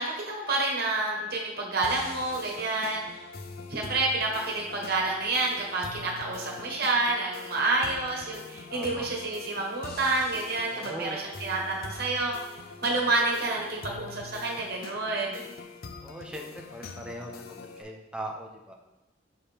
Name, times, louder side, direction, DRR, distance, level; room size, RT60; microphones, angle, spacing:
voice 1, 0.0-3.2 3.7-12.3 12.8-15.5, right 2 dB, 55° right, -1 dB, 1.4 m, -29 dB
sound 1, 1.8-17.8, left 4 dB, 50° left, 0.5 m, -44 dB
voice 2, 8.7-9.1 10.7-11.2 16.0-18.7, right 1 dB, 5° right, 1 dB, 0.6 m, -40 dB
5.6 x 4.8 x 3.4 m, 1.0 s
head